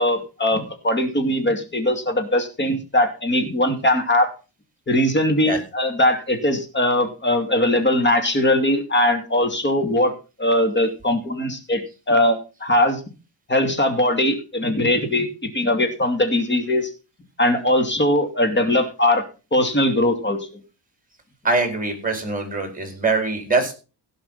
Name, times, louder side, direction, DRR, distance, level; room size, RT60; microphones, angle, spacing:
voice 1, 0.0-4.3 4.9-10.1 10.4-13.0 13.5-16.9 17.4-19.2 19.5-20.4, left 1 dB, 25° left, 6 dB, 2.7 m, -20 dB
voice 2, 21.4-23.7, right 3 dB, 20° right, 5 dB, 4.6 m, -23 dB
17.0 x 5.8 x 5.6 m, 0.33 s
cardioid pair, 120°, 43 cm